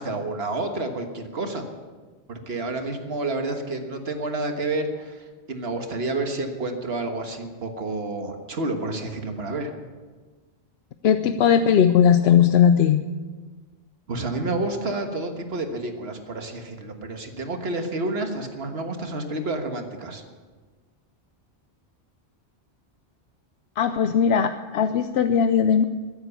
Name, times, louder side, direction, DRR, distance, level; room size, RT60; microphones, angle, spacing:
voice 1, 0.0-1.7 2.3-9.7 14.1-20.2, right 2 dB, 70° right, 5 dB, 1.7 m, -29 dB
voice 2, 11.0-13.0 23.8-25.8, left 8 dB, 75° left, 9 dB, 0.8 m, -18 dB
13.5 x 10.0 x 7.0 m, 1.4 s
omnidirectional pair, 1.1 m